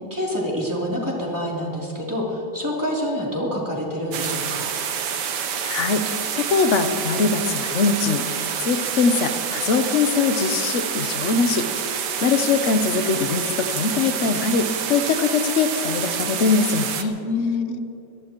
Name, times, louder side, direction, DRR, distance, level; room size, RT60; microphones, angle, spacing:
voice 1, 0.1-4.7 17.2-17.8, left 1 dB, 10° right, -5 dB, 2.8 m, -26 dB
sound 1, 4.1-17.0, right 7 dB, 60° right, 1.4 m, -27 dB
voice 2, 5.4-6.1 6.3-11.7 12.2-17.2, left 5 dB, 60° left, 9 dB, 0.8 m, -22 dB
25.0 x 18.0 x 3.0 m, 2.8 s
omnidirectional pair, 2.3 m